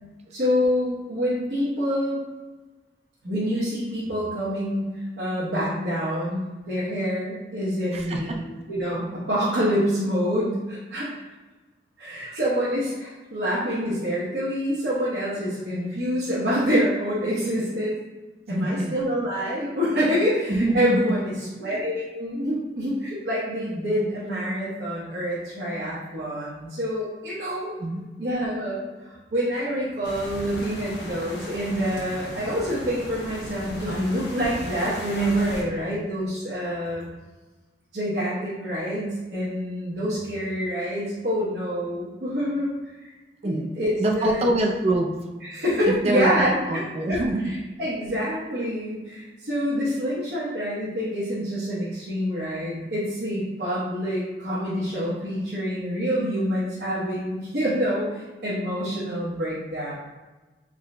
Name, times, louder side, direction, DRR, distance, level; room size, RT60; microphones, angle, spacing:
voice 1, 0.3-2.2 3.2-4.9 5.2-11.1 12.0-17.9 18.5-21.3 21.6-27.7 28.2-37.0 37.9-43.1 43.4-44.5 45.5-46.8 47.1-47.2 47.8-59.9, equal, 70° right, -9 dB, 0.9 m, -26 dB
voice 2, 7.9-8.4 12.2-12.4 18.5-19.0 20.5-21.2 21.6-21.8 27.8-28.0 43.4-43.7 44.0-45.2 46.0-47.6, right 1 dB, 35° right, 1 dB, 0.4 m, -25 dB
sound 1, 30.0-35.6, left 1 dB, 75° left, 0.8 m, -37 dB
3.7 x 2.2 x 3.7 m, 1.2 s
head